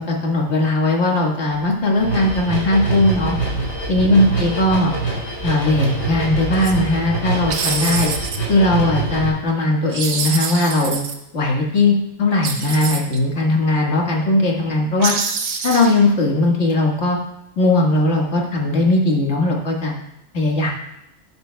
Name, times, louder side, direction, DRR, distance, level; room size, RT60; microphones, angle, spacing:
voice 1, 0.0-3.4 3.9-4.9 5.4-8.1 8.5-11.0 11.3-15.1 15.6-17.2 17.6-20.0 20.3-20.7, left 2 dB, 50° left, -1 dB, 1.9 m, -18 dB
sound 1, 2.0-9.3, right 3 dB, 75° left, 4.6 m, -25 dB
sound 2, 6.5-6.7 7.5-8.4 9.9-11.1 12.4-13.2 15.0-16.1, right 5 dB, 70° right, 1.3 m, -25 dB
13.0 x 9.5 x 2.3 m, 0.82 s
omnidirectional pair, 1.5 m